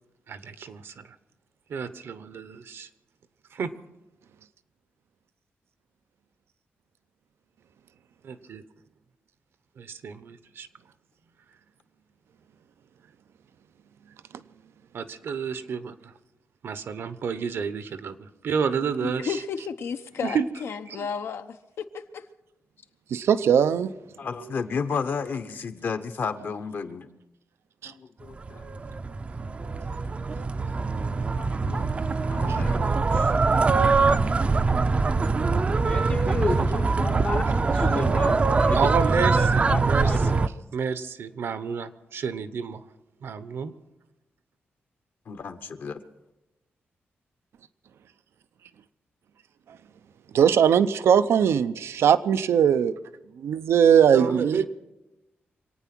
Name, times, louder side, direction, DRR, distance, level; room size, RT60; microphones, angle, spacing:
voice 1, 0.3-1.0 1.7-2.9 3.5-3.7 8.2-8.6 9.8-10.7 14.9-16.1 16.6-19.4 20.2-20.5 20.9-21.1 38.7-40.4 40.7-42.8 43.2-43.7 54.1-54.7, right 6 dB, 65° right, 0.9 m, -30 dB
voice 2, 19.0-22.2, left 6 dB, 75° left, 0.8 m, -33 dB
voice 3, 23.1-23.9 27.8-27.9 50.3-52.9 53.4-54.6, right 8 dB, 85° right, 0.6 m, -20 dB
voice 4, 24.2-27.1 27.8-28.8 31.4-31.9 32.3-33.3 45.3-46.0 54.3-54.4, left 5 dB, 55° left, 1.0 m, -33 dB
sound 1, 28.4-40.5, right 4 dB, 30° right, 0.5 m, -23 dB
voice 5, 35.8-40.4, left 3 dB, 35° left, 0.7 m, -32 dB
25.5 x 9.2 x 6.0 m
wide cardioid pair, 140°, 4 cm